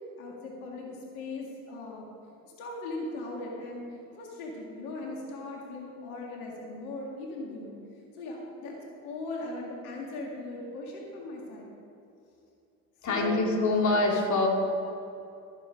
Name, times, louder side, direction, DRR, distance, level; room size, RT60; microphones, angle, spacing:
voice 1, 0.2-2.0 2.4-7.8 8.1-11.7 13.1-13.5, left 2 dB, 80° left, -2 dB, 2.2 m, -39 dB
voice 2, 13.0-14.5, left 2 dB, 40° left, 0 dB, 2.8 m, -25 dB
13.0 x 9.8 x 5.1 m, 2.7 s
hypercardioid pair, 65°, 43 cm